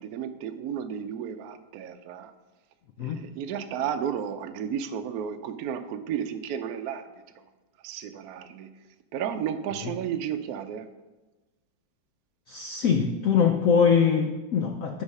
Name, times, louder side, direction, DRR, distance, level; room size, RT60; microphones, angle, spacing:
voice 1, 0.0-2.3 3.0-7.1 7.8-8.7 9.1-10.9, right 8 dB, 70° right, 8 dB, 0.9 m, -33 dB
voice 2, 12.5-15.0, left 6 dB, 85° left, 5 dB, 0.7 m, -23 dB
9.7 x 4.0 x 5.4 m, 1.2 s
omnidirectional pair, 2.1 m